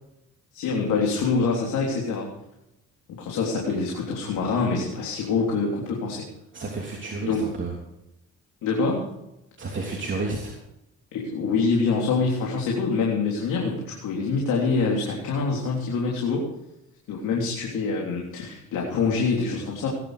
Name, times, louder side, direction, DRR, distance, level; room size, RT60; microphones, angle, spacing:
voice 1, 0.5-2.3 3.2-6.2 7.2-7.4 8.6-9.1 11.1-16.5 17.1-19.9, left 4 dB, 90° left, -2 dB, 3.4 m, -25 dB
voice 2, 6.5-7.7 9.6-10.6, right 3 dB, 40° right, -1 dB, 3.2 m, -31 dB
19.5 x 11.0 x 5.0 m, 0.87 s
cardioid pair, 90°, 30 cm